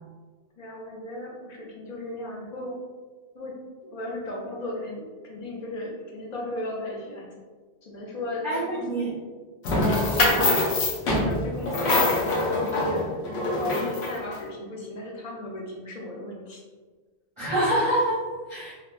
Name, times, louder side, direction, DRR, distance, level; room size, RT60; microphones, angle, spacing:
voice 1, 0.6-2.8 3.3-7.4 7.8-9.1 11.0-16.6, left 1 dB, 55° left, -2 dB, 0.5 m, -36 dB
voice 2, 8.4-9.1 9.8-10.6 17.4-18.7, right 1 dB, 35° right, -9 dB, 0.6 m, -27 dB
sound 1, 9.6-14.3, left 2 dB, 70° left, 0.9 m, -24 dB
3.2 x 2.1 x 2.4 m, 1.4 s
omnidirectional pair, 1.2 m